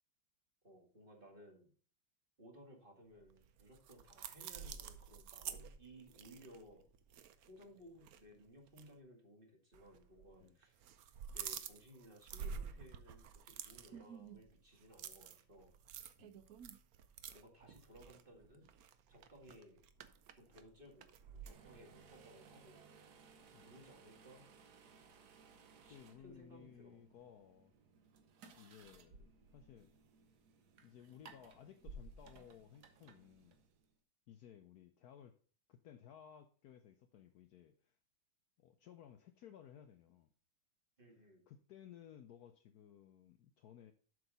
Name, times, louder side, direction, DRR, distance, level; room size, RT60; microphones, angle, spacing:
voice 1, 0.6-1.7 2.4-6.8 7.5-10.8 11.3-15.7 17.3-18.7 19.1-19.8 20.3-22.8 23.2-23.3 23.6-24.5 25.8-27.0 41.0-41.4, equal, 25° right, 2.0 m, -60 dB
sound 1, 3.2-7.7 8.0-8.2 8.7-8.9 9.7-10.4 10.6-21.5, right 7 dB, 75° right, 0.8 m, -50 dB
sound 2, 21.4-33.9, right 3 dB, 55° right, 1.3 m, -60 dB
voice 2, 25.9-27.7 28.6-29.9 30.8-33.6 34.3-35.4 35.7-38.0 38.6-40.3 41.5-43.9, left 9 dB, 90° left, 0.8 m, -58 dB
7.8 x 6.4 x 3.9 m
omnidirectional pair, 2.4 m